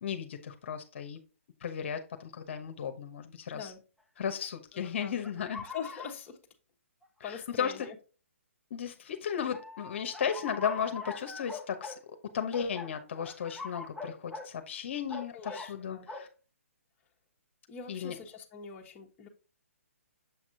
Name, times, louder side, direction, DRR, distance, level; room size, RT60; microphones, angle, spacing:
voice 1, 0.0-1.2 1.6-3.7 4.2-5.6 7.3-7.9 8.7-12.0 12.3-16.3 17.9-18.1, left 7 dB, 55° left, 1.0 m, -35 dB
sound 1, 4.4-4.5 5.2-6.1 7.0-7.1 7.8-7.9 9.4-12.0 12.5-14.5 15.1-15.7 16.1-16.3, left 3 dB, ahead, 0.7 m, -42 dB
voice 2, 4.7-5.2 5.6-6.4 7.2-8.0 15.3-16.1 17.7-19.3, left 6 dB, 20° left, 1.3 m, -43 dB
7.1 x 6.0 x 2.7 m
hypercardioid pair, 140°, 8 cm